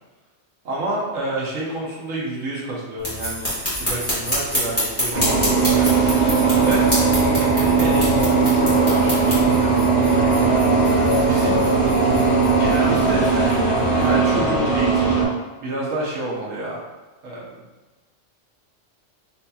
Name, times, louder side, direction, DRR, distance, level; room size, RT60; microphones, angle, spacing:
voice 1, 0.6-3.5 3.8-7.2 7.5-9.9 11.3-11.6 12.5-15.3 15.6-16.8 17.2-17.6, right 2 dB, 90° right, -5 dB, 1.1 m, -29 dB
sound 1, 3.0-9.4, equal, 10° left, 1.4 m, -26 dB
sound 2, 3.1-14.1, equal, 35° left, 1.3 m, -38 dB
sound 3, 5.1-15.2, right 4 dB, 40° right, 0.8 m, -18 dB
4.1 x 2.9 x 2.2 m, 1.2 s
omnidirectional pair, 1.3 m